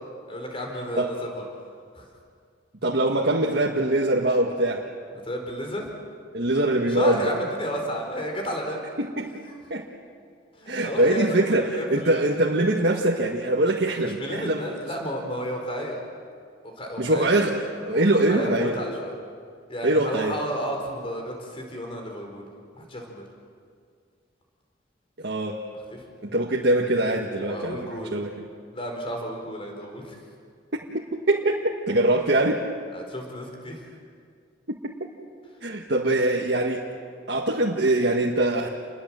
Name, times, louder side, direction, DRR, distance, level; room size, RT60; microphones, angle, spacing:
voice 1, 0.3-1.4 1.9-2.1 5.2-5.9 6.9-8.8 10.6-11.4 11.7-12.2 14.2-16.0 16.6-17.4 17.9-18.0 18.3-19.1 19.7-22.5 22.7-23.3 25.9-26.0 27.4-28.1 28.7-30.2 32.9-33.8, equal, 30° left, 2 dB, 4.8 m, -32 dB
voice 2, 2.8-4.9 6.3-7.3 9.0-9.3 9.7-9.9 10.7-14.6 17.0-18.8 19.8-20.4 25.2-25.6 26.2-27.8 28.1-28.3 30.9-31.0 31.3-32.6 34.7-34.8 35.6-36.8 37.3-38.7, right 1 dB, 60° right, -2 dB, 1.8 m, -23 dB
29.5 x 21.5 x 7.8 m, 2.1 s
head